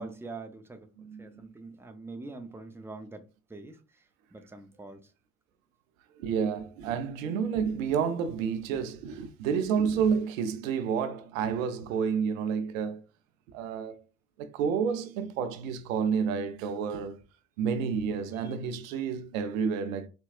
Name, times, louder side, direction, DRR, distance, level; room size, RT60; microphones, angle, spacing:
voice 1, 0.0-0.9 1.2-3.2 3.5-3.8 4.3-5.0 18.4-18.5, right 3 dB, 5° right, 0.6 m, -43 dB
voice 2, 1.0-1.5 6.2-13.0 13.5-14.0 14.4-17.2 17.6-20.1, right 6 dB, 80° right, 0.5 m, -30 dB
4.1 x 2.2 x 2.4 m
hypercardioid pair, 50°, 40 cm